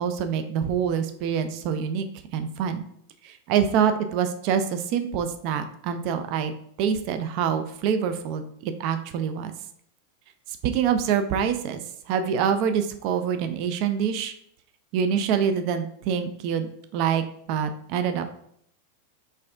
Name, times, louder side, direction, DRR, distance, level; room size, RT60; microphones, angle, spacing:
voice 1, 0.0-2.0 2.3-2.8 3.2-6.5 6.8-9.5 10.6-11.8 12.1-14.3 14.9-18.3, right 7 dB, 45° right, 8 dB, 0.3 m, -25 dB
4.1 x 2.5 x 2.4 m, 0.68 s
figure-of-eight pair, 90°, 0 cm